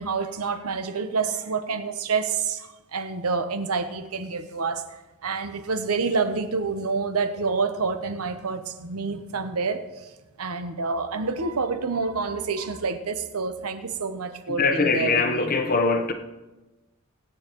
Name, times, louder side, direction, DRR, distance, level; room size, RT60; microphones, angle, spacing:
voice 1, 0.0-4.8 5.2-10.1 10.4-15.5, right 4 dB, 85° right, 0.9 m, -28 dB
voice 2, 14.6-16.1, left 4 dB, 40° left, 0.9 m, -22 dB
22.5 x 8.8 x 3.0 m
head